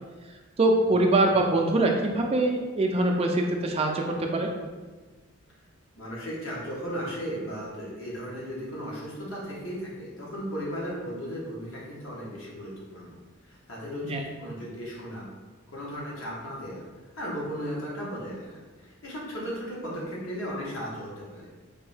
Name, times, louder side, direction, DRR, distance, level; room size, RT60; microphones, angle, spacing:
voice 1, 0.6-4.5 14.0-14.2, right 2 dB, 30° right, 2 dB, 0.3 m, -23 dB
voice 2, 6.0-13.1 13.4-15.3 15.7-21.5, equal, 65° left, -5 dB, 1.1 m, -36 dB
3.5 x 2.6 x 3.4 m, 1.3 s
head